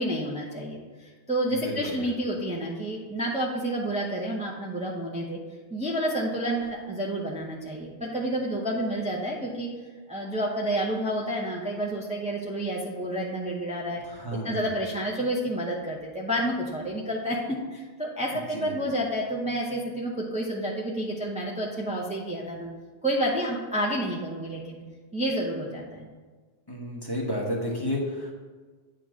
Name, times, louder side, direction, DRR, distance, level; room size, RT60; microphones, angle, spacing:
voice 1, 0.0-5.4 5.7-9.7 10.1-14.0 14.3-22.7 23.0-24.8 25.1-26.1, right 1 dB, 5° right, -4 dB, 0.7 m, -29 dB
voice 2, 1.5-2.0 14.0-14.6 18.3-18.7 26.7-28.3, equal, 20° left, -3 dB, 1.1 m, -32 dB
8.9 x 3.0 x 6.1 m, 1.4 s
omnidirectional pair, 1.2 m